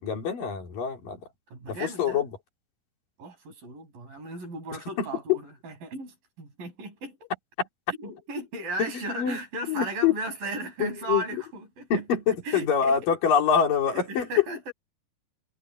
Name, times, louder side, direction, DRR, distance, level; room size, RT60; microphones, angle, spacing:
voice 1, 0.0-1.2 1.7-2.3 5.0-5.4 7.6-7.7 8.8-9.4 9.7-10.2 10.8-11.2 11.9-14.3, left 7 dB, 65° left, 5.3 m, -25 dB
voice 2, 1.5-2.2 3.2-7.3 8.0-11.9 12.5-13.0 13.9-14.7, right 2 dB, 70° right, 7.8 m, -36 dB
omnidirectional pair, 4.2 m